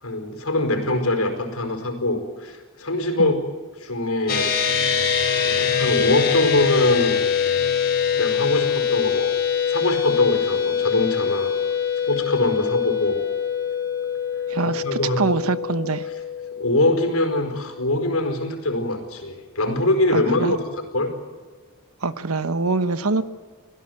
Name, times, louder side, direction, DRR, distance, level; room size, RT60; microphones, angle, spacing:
voice 1, 0.0-3.4 3.8-4.9 5.3-7.2 8.1-9.4 9.7-11.5 12.1-13.2 14.7-15.2 16.5-20.6 20.9-21.1, left 2 dB, 80° left, 5 dB, 4.8 m, -23 dB
sound 1, 4.3-17.9, left 7 dB, 45° left, 4.1 m, -24 dB
voice 2, 14.5-16.1 20.1-20.5 22.0-23.2, right 3 dB, 80° right, 12 dB, 1.1 m, -24 dB
25.5 x 16.5 x 9.4 m, 1.4 s
head